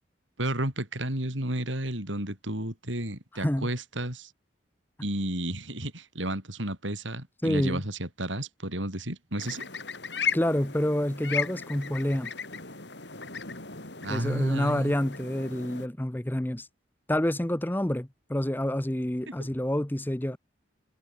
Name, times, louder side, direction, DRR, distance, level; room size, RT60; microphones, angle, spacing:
voice 1, 0.4-4.3 5.0-9.7 14.0-14.9, right 1 dB, 90° right, 7.2 m, -32 dB
voice 2, 3.3-3.7 7.4-7.8 10.3-12.3 14.1-16.7 17.1-20.4, left 1 dB, 10° left, 0.7 m, -28 dB
sound 1, 9.4-15.9, left 6 dB, 70° left, 6.1 m, -36 dB
head